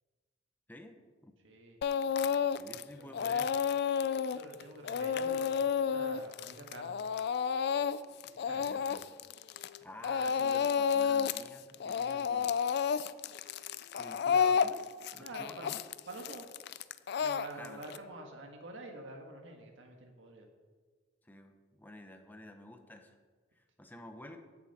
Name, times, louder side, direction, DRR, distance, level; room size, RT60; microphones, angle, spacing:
voice 1, 1.4-2.4 2.9-3.4 4.3-7.2 8.2-8.9 15.2-15.7 16.1-16.5 17.2-20.5, right 2 dB, 75° right, 2 dB, 1.6 m, -48 dB
Speech / Crying sobbing, 1.8-2.8 3.1-9.8 10.0-11.5 11.7-18.0, left 7 dB, 60° left, 0.4 m, -31 dB
voice 2, 2.6-3.6 8.6-9.0 9.8-12.5 14.0-15.8 17.6-17.8 21.2-23.1 23.5-24.4, left 1 dB, 10° left, 5 dB, 0.9 m, -50 dB
16.0 x 7.1 x 4.3 m, 1.4 s
head